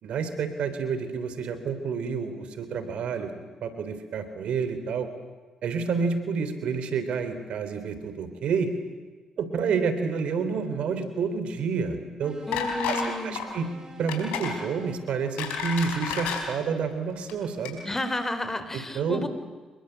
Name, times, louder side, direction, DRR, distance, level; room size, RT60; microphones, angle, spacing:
voice 1, 0.0-3.3 3.6-5.1 5.6-8.7 9.4-12.4 12.9-13.7 14.0-17.8 18.7-19.2, right 5 dB, 70° right, 10 dB, 3.6 m, -29 dB
sound 1, 12.2-15.1, right 3 dB, 35° right, 4.9 m, -47 dB
sound 2, 12.5-13.1 13.4-13.6 14.1-14.6 15.1-16.4 17.2-17.3 17.6-17.7, left 7 dB, 85° left, 4.8 m, -30 dB
voice 2, 12.5-13.4 17.8-19.3, left 1 dB, 20° left, 11 dB, 3.9 m, -31 dB
27.5 x 22.0 x 8.2 m, 1.4 s
supercardioid pair, 60°, 2 cm